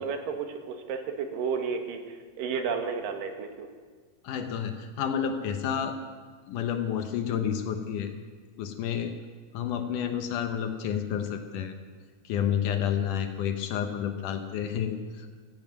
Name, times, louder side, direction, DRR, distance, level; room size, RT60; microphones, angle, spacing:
voice 1, 0.0-3.7, right 5 dB, 75° right, 5 dB, 3.0 m, -32 dB
voice 2, 4.2-6.0 6.5-8.1 8.6-9.2 9.5-11.7 12.2-15.3, left 8 dB, 70° left, 6 dB, 2.3 m, -30 dB
16.5 x 14.0 x 6.0 m, 1.6 s
omnidirectional pair, 4.0 m